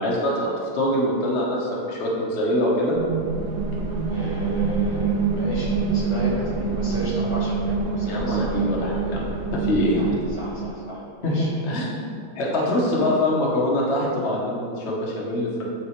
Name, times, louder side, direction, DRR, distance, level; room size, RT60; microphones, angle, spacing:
voice 1, 0.0-3.0 8.1-9.2 9.5-10.1 11.2-11.4 11.6-11.9 12.3-15.6, left 1 dB, 40° left, -4 dB, 1.1 m, -24 dB
sound 1, 2.9-10.7, right 4 dB, 75° right, 1.5 m, -26 dB
voice 2, 4.1-8.6 10.0-10.1 10.4-11.5, equal, 60° left, -6 dB, 2.0 m, -34 dB
8.8 x 3.9 x 3.1 m, 2.4 s
omnidirectional pair, 2.1 m